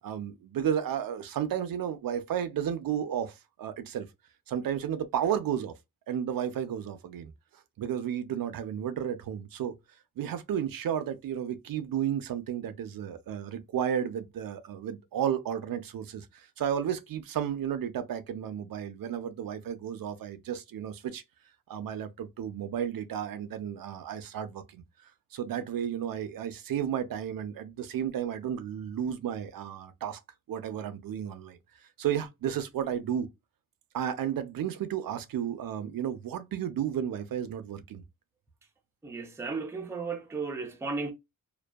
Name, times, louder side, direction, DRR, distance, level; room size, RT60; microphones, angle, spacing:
voice 1, 0.0-4.1 4.5-5.7 6.1-7.3 7.8-9.8 10.2-21.2 21.7-24.8 25.3-30.2 30.5-31.6 32.0-33.3 33.9-38.0, right 9 dB, 70° right, 0.5 m, -33 dB
voice 2, 39.0-41.1, right 4 dB, 10° right, 0.4 m, -34 dB
2.6 x 2.2 x 2.2 m
wide cardioid pair, 150°, 35 cm